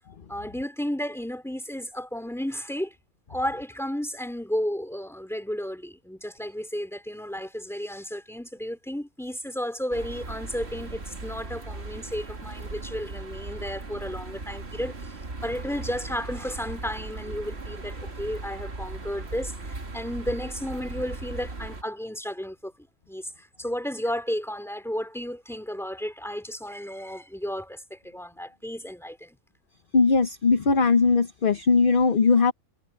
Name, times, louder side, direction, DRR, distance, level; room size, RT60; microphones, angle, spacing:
voice 1, 0.3-2.9 3.3-15.1 15.4-29.4, equal, ahead, 3.0 m, -33 dB
sound 1, 9.9-21.8, right 3 dB, 45° right, 2.3 m, -38 dB
voice 2, 29.9-32.5, left 4 dB, 40° left, 0.9 m, -20 dB
omnidirectional pair, 1.5 m